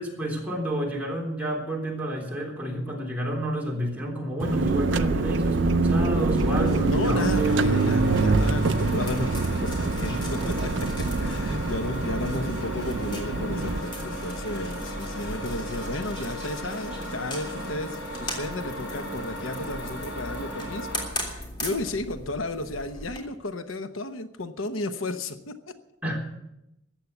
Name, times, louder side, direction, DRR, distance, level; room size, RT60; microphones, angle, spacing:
voice 1, 0.0-8.0 26.0-26.4, equal, 10° right, -2 dB, 3.5 m, -30 dB
sound 1, 4.4-13.8, right 3 dB, 60° right, 0.6 m, -25 dB
sound 2, 5.0-23.2, equal, 25° left, 3.3 m, -38 dB
voice 2, 6.9-20.9 21.2-25.7, left 2 dB, 80° left, 9 dB, 1.0 m, -33 dB
sound 3, 7.2-21.1, equal, 65° left, 5.1 m, -36 dB
14.5 x 9.3 x 8.2 m, 0.84 s
head